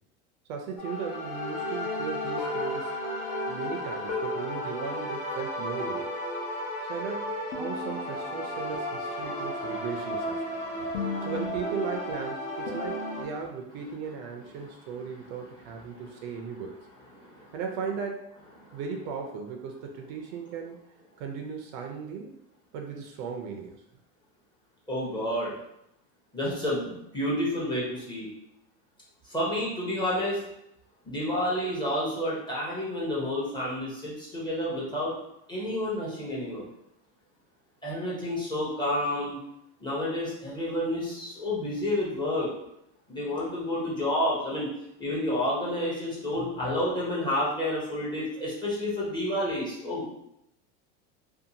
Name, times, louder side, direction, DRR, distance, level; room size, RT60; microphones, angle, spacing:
voice 1, 0.5-3.0 3.5-6.1 6.9-10.4 11.2-16.8 17.5-18.3 18.7-20.8 21.2-22.3 22.7-23.8, right 6 dB, 55° right, 2 dB, 0.5 m, -37 dB
sound 1, 0.8-13.2, left 1 dB, 50° left, 0.8 m, -33 dB
voice 2, 10.6-11.3 17.1-17.4 18.7-18.8 24.9-25.5 26.3-28.3 29.3-30.4 31.0-35.1 35.5-36.6 37.8-39.4 39.8-42.5 43.1-44.7 45.0-50.1, left 1 dB, 10° left, -6 dB, 0.7 m, -30 dB
2.6 x 2.2 x 2.7 m, 0.81 s
supercardioid pair, 135°, 37 cm